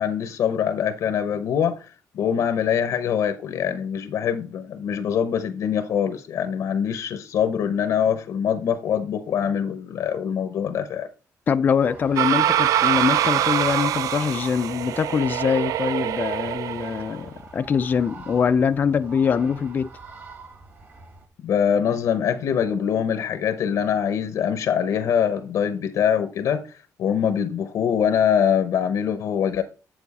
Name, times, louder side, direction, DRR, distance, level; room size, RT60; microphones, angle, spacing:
voice 1, 0.0-11.1 21.4-26.6 27.0-29.6, left 8 dB, 65° left, 0.7 m, -23 dB
voice 2, 11.5-19.9, left 6 dB, 30° left, 0.3 m, -23 dB
sound 1, 11.8-21.3, right 3 dB, 35° right, 1.5 m, -45 dB
sound 2, 12.2-17.2, right 11 dB, 70° right, 0.3 m, -24 dB
7.8 x 7.0 x 4.1 m
cardioid pair, 175°, 6 cm